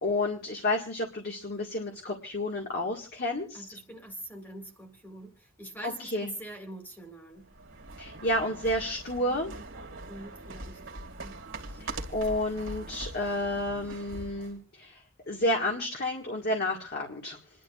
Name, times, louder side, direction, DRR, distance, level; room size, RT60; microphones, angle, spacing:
voice 1, 0.0-3.7 5.8-6.3 8.0-9.5 11.8-17.4, left 1 dB, 50° left, 0 dB, 1.8 m, -31 dB
voice 2, 3.5-7.4 10.1-10.8 11.2-11.4, right 1 dB, 10° left, 4 dB, 2.1 m, -44 dB
sound 1, 7.4-14.6, right 2 dB, 70° right, 2.1 m, -42 dB
28.5 x 11.0 x 2.4 m, 0.35 s
head